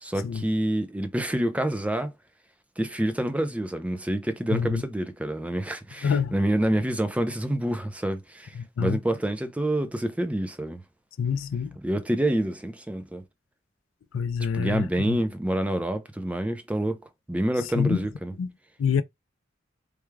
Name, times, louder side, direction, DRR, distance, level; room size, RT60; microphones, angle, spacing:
voice 1, 0.0-2.1 2.8-10.8 11.8-13.2 14.5-17.0 17.3-18.3, right 1 dB, 5° right, 0.5 m, -27 dB
voice 2, 4.5-4.8 6.0-6.4 8.6-9.0 11.2-11.7 14.1-15.2 17.8-18.0 18.4-18.5 18.8-19.0, left 6 dB, 80° left, 0.3 m, -26 dB
3.4 x 2.3 x 3.1 m
head